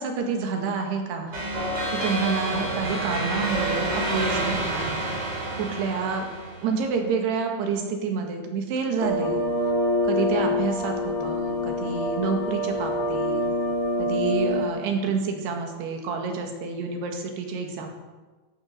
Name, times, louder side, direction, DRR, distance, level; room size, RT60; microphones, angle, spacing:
voice 1, 0.0-1.4 2.0-5.1 5.6-6.3 6.6-9.5 10.0-13.4 14.0-17.9, right 5 dB, 65° right, 3 dB, 3.6 m, -28 dB
sound 1, 1.3-6.8, right 1 dB, 30° right, 4.1 m, -28 dB
sound 2, 9.0-14.7, left 1 dB, 80° left, 1.1 m, -26 dB
14.5 x 11.5 x 6.6 m, 1.3 s
omnidirectional pair, 5.5 m